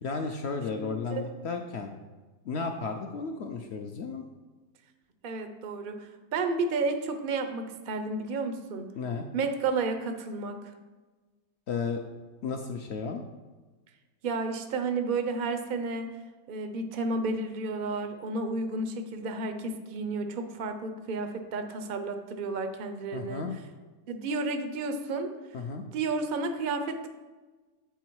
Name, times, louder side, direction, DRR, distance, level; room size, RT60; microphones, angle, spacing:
voice 1, 0.0-1.9 2.5-4.3 8.9-9.3 11.7-12.0 12.4-13.2 23.1-23.5 25.5-25.8, left 4 dB, 80° left, 4 dB, 0.6 m, -33 dB
voice 2, 0.8-1.2 5.2-8.9 9.3-10.6 14.2-16.1 16.5-23.5 24.1-25.3 25.9-27.1, right 3 dB, 70° right, 8 dB, 0.5 m, -32 dB
8.2 x 4.7 x 4.5 m, 1.3 s
omnidirectional pair, 1.7 m